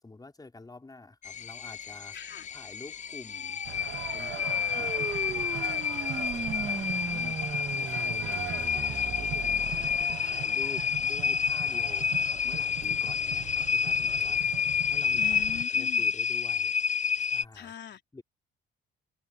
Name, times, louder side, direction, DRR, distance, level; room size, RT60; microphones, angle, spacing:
voice 1, 0.0-2.2 2.5-3.6 4.1-5.8 6.1-7.3 7.7-9.7 10.2-14.4 14.9-15.4 15.7-16.7 17.2-17.7 18.1-18.2, left 3 dB, 20° left, 4.7 m, -48 dB
sound 1, 1.2-17.4, left 7 dB, 40° left, 0.5 m, -29 dB
voice 2, 2.1-2.5 6.6-7.4 15.2-16.1 17.5-18.0, left 9 dB, 60° left, 3.9 m, -43 dB
sound 2, 3.2-10.1, right 5 dB, 35° right, 2.6 m, -39 dB
sound 3, 3.6-15.7, right 14 dB, 85° right, 1.1 m, -41 dB
cardioid pair, 90°, 20 cm